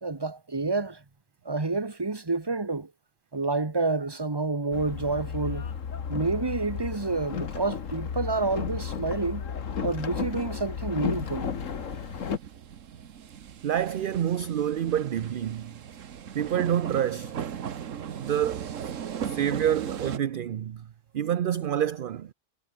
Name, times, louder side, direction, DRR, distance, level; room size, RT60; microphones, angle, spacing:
voice 1, 0.0-1.0 1.4-2.9 3.3-5.7 6.1-9.4 9.8-11.5, right 3 dB, 20° right, 1.3 m, -29 dB
Boat Water vehicle, 4.7-12.4, left 6 dB, 90° left, 1.8 m, -33 dB
sound 1, 11.0-20.2, right 8 dB, 85° right, 1.5 m, -38 dB
voice 2, 13.6-15.7 16.3-17.3 18.2-18.9 19.2-20.9 21.1-22.3, right 10 dB, 55° right, 0.7 m, -27 dB
omnidirectional pair, 1.3 m